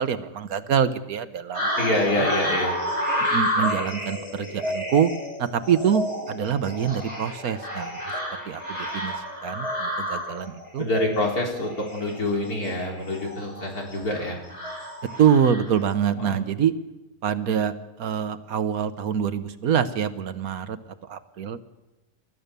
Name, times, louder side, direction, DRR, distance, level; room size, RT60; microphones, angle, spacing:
voice 1, 0.0-1.7 2.2-2.3 3.3-5.1 5.4-8.0 8.5-9.1 9.4-10.8 15.2-16.7 17.2-17.7 18.0-20.8 21.1-21.6, right 8 dB, 75° right, 12 dB, 1.5 m, -25 dB
sound 1, 1.5-15.8, equal, 20° left, 7.7 m, -30 dB
voice 2, 1.8-2.7 10.8-14.4 16.2-16.4, left 1 dB, 80° left, 0 dB, 4.3 m, -26 dB
29.5 x 14.5 x 6.9 m, 1.1 s
omnidirectional pair, 1.6 m